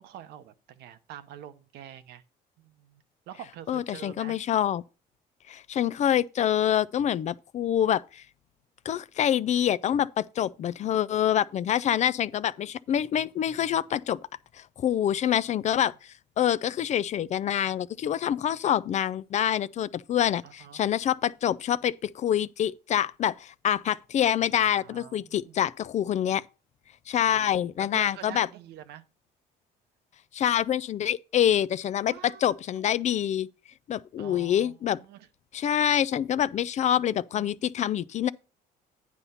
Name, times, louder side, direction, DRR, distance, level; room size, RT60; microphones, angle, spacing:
voice 1, 0.0-2.2 2.6-4.4 20.4-20.8 24.5-25.6 27.3-29.0 32.1-32.9 34.2-35.3 37.3-37.5, right 10 dB, 80° right, 0.8 m, -46 dB
voice 2, 3.7-4.8 5.5-8.2 8.8-14.2 14.6-26.4 27.1-28.5 30.3-33.5 33.9-35.0 35.5-38.3, left 10 dB, 45° left, 0.4 m, -26 dB
9.7 x 4.2 x 5.6 m
cardioid pair, 110°, 17 cm